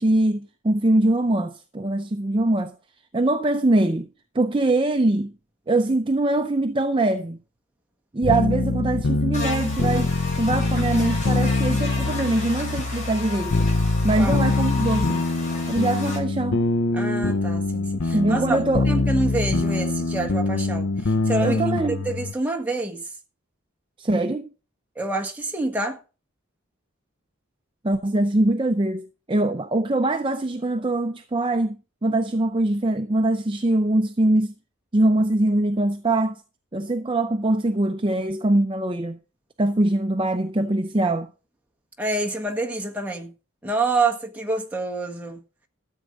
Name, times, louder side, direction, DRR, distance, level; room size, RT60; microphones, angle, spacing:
voice 1, 0.0-2.7 3.1-4.1 4.3-5.3 5.7-7.4 8.1-13.7 14.0-15.3 15.7-16.6 18.1-18.9 21.4-22.0 24.0-24.5 27.8-34.5 34.9-36.4 36.7-39.2 39.6-41.3, right 2 dB, 25° right, 0.5 m, -22 dB
sound 1, 8.2-22.3, left 3 dB, 65° left, 0.7 m, -24 dB
Buzz, 9.3-16.2, left 4 dB, 35° left, 4.7 m, -34 dB
voice 2, 14.2-14.5 16.9-18.6 18.9-23.0 25.0-26.0 42.0-43.3 43.6-45.4, right 2 dB, 5° right, 1.4 m, -27 dB
13.5 x 8.1 x 5.2 m
head